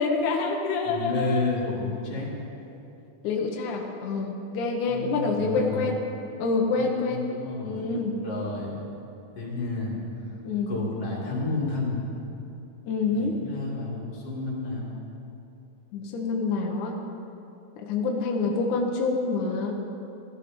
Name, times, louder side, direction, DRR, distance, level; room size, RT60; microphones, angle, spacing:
voice 1, 0.0-1.4 3.2-6.0 6.4-7.2 7.6-8.1 10.4-10.7 12.9-13.4 15.9-16.9 17.8-19.8, left 4 dB, 70° left, 1 dB, 1.9 m, -27 dB
voice 2, 0.8-2.3 4.8-5.9 6.7-7.9 8.2-8.8 9.3-10.0 10.7-12.0 13.1-14.9, left 3 dB, 40° left, -4 dB, 3.1 m, -31 dB
16.5 x 12.0 x 5.2 m, 2.8 s
omnidirectional pair, 4.9 m